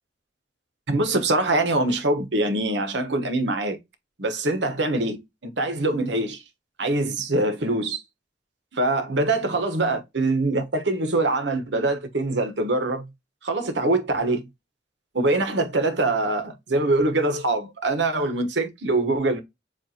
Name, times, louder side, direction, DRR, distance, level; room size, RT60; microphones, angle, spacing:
voice 1, 0.9-3.8 4.2-6.4 6.8-8.0 8.7-13.1 13.4-14.5 15.1-19.4, right 2 dB, 75° right, 1.1 m, -24 dB
7.4 x 2.6 x 2.8 m
head